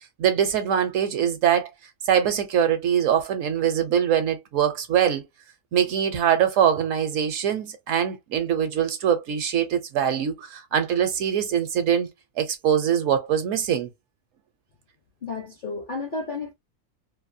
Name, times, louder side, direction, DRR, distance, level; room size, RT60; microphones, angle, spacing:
voice 1, 0.2-1.7 2.0-5.2 5.7-12.1 12.4-13.9, right 9 dB, 70° right, 0.9 m, -23 dB
voice 2, 15.2-16.5, left 3 dB, 50° left, 0.6 m, -32 dB
2.7 x 2.3 x 2.5 m
omnidirectional pair, 1.5 m